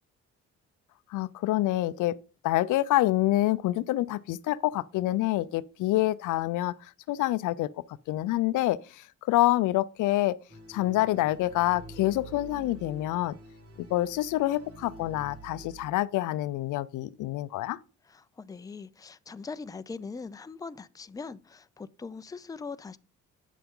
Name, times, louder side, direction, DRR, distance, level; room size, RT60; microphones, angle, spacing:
voice 1, 1.1-2.2 2.4-7.7 8.1-10.4 10.7-13.4 13.9-17.8, left 16 dB, 80° left, 0.5 m, -27 dB
sound 1, 10.5-15.9, right 2 dB, 55° right, 2.9 m, -47 dB
voice 2, 18.1-23.0, left 4 dB, 10° left, 0.4 m, -41 dB
9.2 x 6.9 x 3.7 m
cardioid pair, 90°, 30 cm